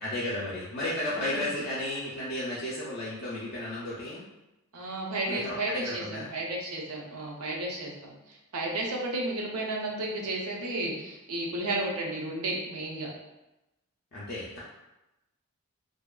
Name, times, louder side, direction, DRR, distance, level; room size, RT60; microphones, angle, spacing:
voice 1, 0.0-4.2 5.3-6.3 14.1-14.6, left 1 dB, 45° left, -8 dB, 0.4 m, -33 dB
voice 2, 4.7-6.0 6.3-13.1, right 2 dB, 80° right, -1 dB, 0.5 m, -33 dB
2.6 x 2.2 x 2.2 m, 0.96 s
head